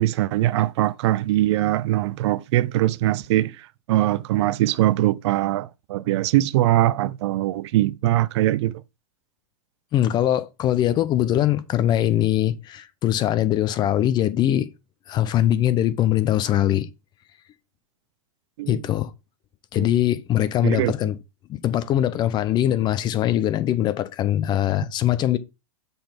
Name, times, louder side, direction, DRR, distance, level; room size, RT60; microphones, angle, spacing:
voice 1, 0.0-8.8 18.6-18.8 19.8-19.9 20.6-20.9, right 15 dB, 50° right, 0.4 m, -22 dB
voice 2, 9.9-14.7 15.1-16.9 18.7-19.1 19.7-21.2 21.5-25.4, left 12 dB, 25° left, 0.6 m, -22 dB
6.8 x 4.0 x 5.2 m
hypercardioid pair, 135°, 18 cm